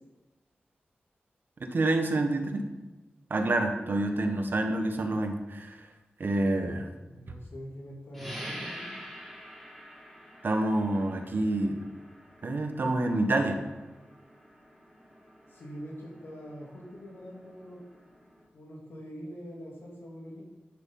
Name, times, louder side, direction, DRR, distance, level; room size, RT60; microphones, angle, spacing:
voice 1, 1.6-2.6 3.3-5.9 6.2-6.9 10.4-11.8 12.4-13.6, right 2 dB, 60° right, 4 dB, 1.4 m, -27 dB
voice 2, 6.6-9.0 15.5-17.8 18.5-20.4, equal, 80° left, -2 dB, 3.0 m, -44 dB
sound 1, 8.1-18.4, equal, 5° left, 3.3 m, -47 dB
10.0 x 7.4 x 6.0 m, 1.1 s
wide cardioid pair, 95°, 4 cm